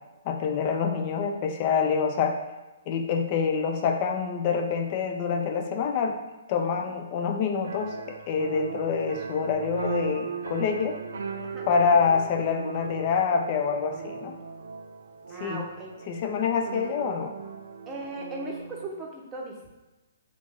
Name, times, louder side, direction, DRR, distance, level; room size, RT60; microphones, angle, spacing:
voice 1, 0.3-2.4 2.9-6.2 6.5-11.0 11.7-14.4 15.4-15.6 16.1-17.3, left 6 dB, 40° left, 4 dB, 0.4 m, -26 dB
sound 1, 7.6-18.9, right 5 dB, 80° right, 0.3 m, -38 dB
voice 2, 15.3-15.9 17.9-19.8, right 2 dB, 20° right, -1 dB, 0.7 m, -38 dB
3.1 x 2.6 x 3.5 m, 1.1 s
hypercardioid pair, 135°, 0 cm